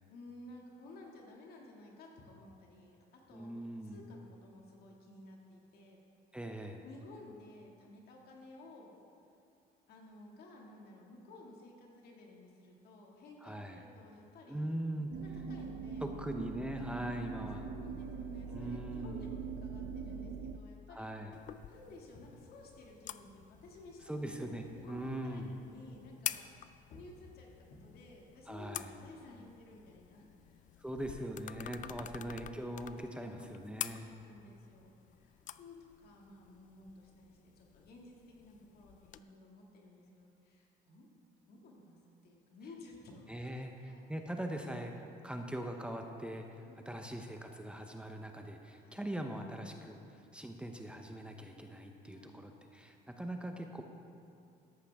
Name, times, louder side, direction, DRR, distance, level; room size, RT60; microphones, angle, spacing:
voice 1, 0.1-3.0 3.3-6.0 6.8-8.9 9.9-16.1 17.6-21.1 21.7-26.5 26.9-30.6 31.7-32.3 33.1-41.1 41.5-42.0 42.2-44.1 46.6-47.2 48.8-49.0 52.0-52.4, left 2 dB, 65° left, -1 dB, 2.2 m, -55 dB
voice 2, 3.3-4.0 6.3-6.8 13.4-13.8 14.5-15.1 16.0-17.7 18.5-19.3 20.9-21.3 24.1-25.5 28.5-28.9 30.8-34.1 43.3-44.9 45.2-53.8, right 1 dB, 5° right, 3 dB, 0.8 m, -41 dB
sound 1, 15.1-20.6, right 6 dB, 60° right, 0.5 m, -42 dB
sound 2, 21.3-39.2, left 11 dB, 50° left, 0.4 m, -48 dB
13.5 x 11.0 x 3.6 m, 2.5 s
cardioid pair, 110°, 17 cm